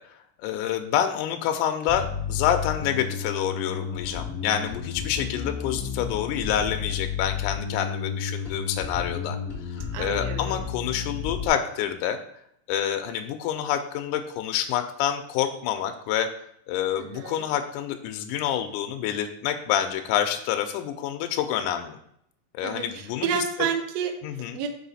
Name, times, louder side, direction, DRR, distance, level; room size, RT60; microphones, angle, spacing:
voice 1, 0.4-9.4 9.7-12.2 12.7-16.3 16.7-22.0 22.5-23.4 24.2-24.6, left 10 dB, 80° left, 6 dB, 1.9 m, -27 dB
Bass guitar, 1.9-11.5, left 6 dB, 50° left, 1.0 m, -32 dB
voice 2, 9.9-10.6 17.0-17.5 22.6-24.2 24.5-24.7, right 7 dB, 90° right, 5 dB, 1.4 m, -30 dB
5.6 x 4.3 x 4.1 m, 0.72 s
omnidirectional pair, 3.9 m